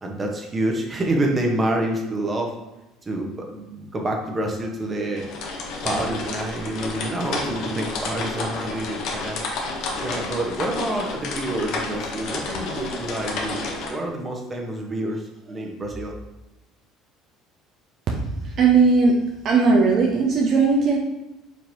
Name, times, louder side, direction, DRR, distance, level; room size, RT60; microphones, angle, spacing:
voice 1, 0.0-2.5 3.0-5.3 5.8-9.4 10.0-16.1, right 1 dB, 25° right, 1 dB, 0.8 m, -27 dB
sound 1, 5.2-13.9, left 3 dB, 65° left, 0.7 m, -30 dB
voice 2, 18.1-19.2 19.4-21.0, right 4 dB, 55° right, 0 dB, 0.5 m, -18 dB
4.4 x 2.9 x 2.7 m, 0.99 s
supercardioid pair, 80°, 0 cm